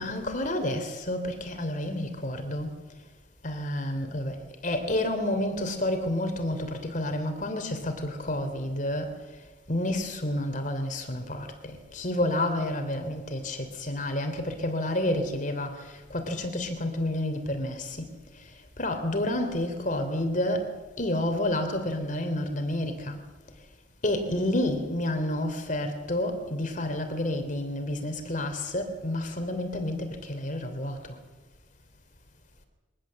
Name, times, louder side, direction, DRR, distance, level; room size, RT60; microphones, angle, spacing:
voice 1, 0.0-2.8 3.4-9.2 9.7-18.1 18.8-23.2 24.0-31.2, left 1 dB, 45° left, 3.4 m, -30 dB
23.0 x 19.0 x 7.7 m
head